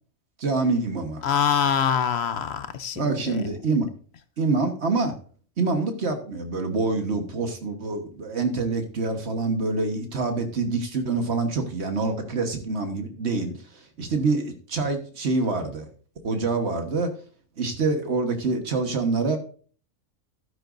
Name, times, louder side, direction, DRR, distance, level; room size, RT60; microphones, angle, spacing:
voice 1, 0.4-1.2 2.9-3.9 4.4-5.2 5.6-13.5 14.0-15.9 16.2-17.1 17.6-19.4, right 3 dB, 55° right, 1.6 m, -26 dB
voice 2, 1.2-3.4, left 8 dB, 60° left, 0.9 m, -24 dB
12.0 x 9.8 x 2.6 m
omnidirectional pair, 1.4 m